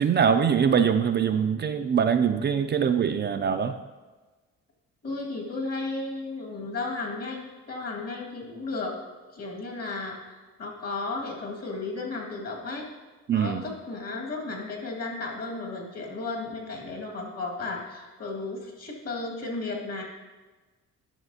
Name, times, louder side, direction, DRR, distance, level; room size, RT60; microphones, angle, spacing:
voice 1, 0.0-3.8 13.3-13.6, right 7 dB, 35° right, 8 dB, 0.4 m, -23 dB
voice 2, 5.0-8.9 9.3-12.9 13.3-20.0, left 3 dB, 55° left, 0 dB, 2.0 m, -34 dB
11.0 x 5.9 x 2.8 m, 1.3 s
cardioid pair, 90°, 30 cm